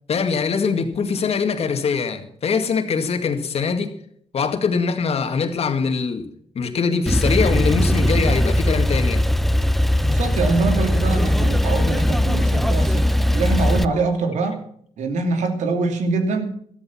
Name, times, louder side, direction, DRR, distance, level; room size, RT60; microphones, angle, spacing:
voice 1, 0.1-3.9 4.3-6.3 6.6-9.3, left 5 dB, 60° left, 2.1 m, -22 dB
Male speech man speaking / Car / Idling, 7.1-13.8, left 1 dB, ahead, 0.7 m, -19 dB
voice 2, 9.9-14.6 15.0-16.5, right 3 dB, 90° right, 2.6 m, -24 dB
14.0 x 13.0 x 5.9 m
cardioid pair, 100°, 12 cm